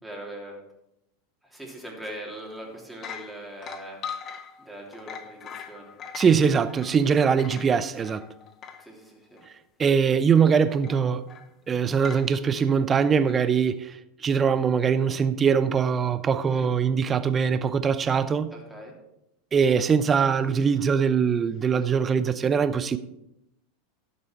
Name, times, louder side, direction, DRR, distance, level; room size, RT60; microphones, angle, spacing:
voice 1, 0.0-0.6 1.4-4.0 4.6-5.9 8.8-9.4 16.4-16.7 18.5-18.9, right 1 dB, ahead, 3.1 m, -41 dB
sound 1, 2.4-2.6 2.9-8.9 9.4-9.5 10.8-11.5 12.0-12.3 13.3-13.4, left 7 dB, 35° left, 0.8 m, -41 dB
voice 2, 6.1-8.3 9.8-11.3 11.7-14.0 14.2-18.5 19.5-23.0, right 6 dB, 25° right, 0.6 m, -22 dB
12.0 x 6.8 x 4.5 m
hypercardioid pair, 90°, 0 cm